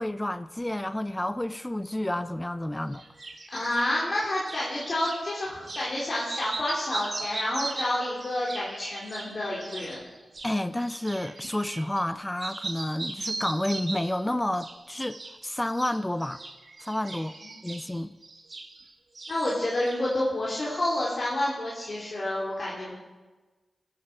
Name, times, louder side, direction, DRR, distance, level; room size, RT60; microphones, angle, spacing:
voice 1, 0.0-3.0 10.4-16.4 16.8-17.3 17.6-18.1, left 1 dB, 15° left, 0.5 m, -30 dB
sound 1, 2.9-5.2 5.6-5.9 6.2-12.1 12.4-14.2 14.5-15.4 15.6-18.9 19.1-20.2, right 3 dB, 55° right, 1.6 m, -39 dB
voice 2, 3.5-10.0 17.4-17.7 19.3-22.9, left 1 dB, 60° left, 2.9 m, -29 dB
15.0 x 9.7 x 4.6 m
cardioid pair, 40°, 0 cm